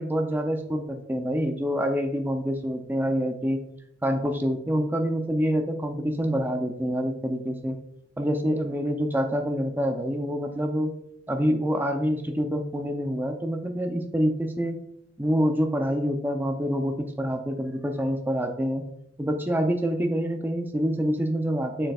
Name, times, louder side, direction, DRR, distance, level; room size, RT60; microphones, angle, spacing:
voice 1, 0.0-3.6 4.0-7.8 8.2-10.9 11.3-14.8 15.2-18.8 19.2-21.9, equal, 10° right, 4 dB, 0.5 m, -26 dB
7.6 x 6.7 x 2.3 m, 0.75 s
head